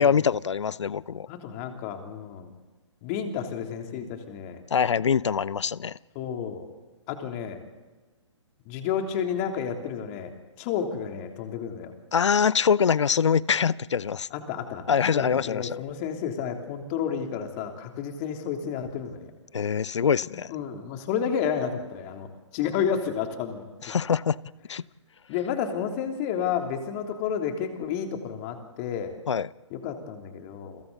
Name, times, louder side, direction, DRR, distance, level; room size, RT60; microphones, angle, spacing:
voice 1, 0.0-1.3 4.7-6.0 12.1-14.3 14.9-15.7 19.5-20.5 23.8-24.4 24.7-24.8 29.3-29.5, left 7 dB, 65° left, 22 dB, 0.6 m, -24 dB
voice 2, 1.3-2.5 3.0-4.6 6.1-6.6 7.1-7.6 8.6-10.3 10.6-11.9 14.3-14.8 15.1-19.2 20.5-24.0 25.3-29.1 29.7-30.8, left 7 dB, 30° left, 4 dB, 3.0 m, -31 dB
30.0 x 23.5 x 4.0 m, 1.3 s
figure-of-eight pair, 135°, 16 cm